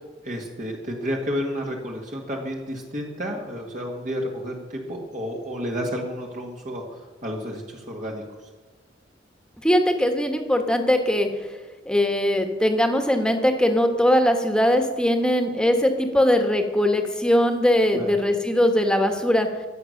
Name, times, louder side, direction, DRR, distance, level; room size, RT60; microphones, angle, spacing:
voice 1, 0.2-8.2 17.9-18.1, equal, 40° right, 0 dB, 1.8 m, -31 dB
voice 2, 9.6-11.3 11.8-19.5, left 1 dB, 5° left, 5 dB, 1.5 m, -20 dB
23.0 x 8.1 x 6.6 m, 1.3 s
head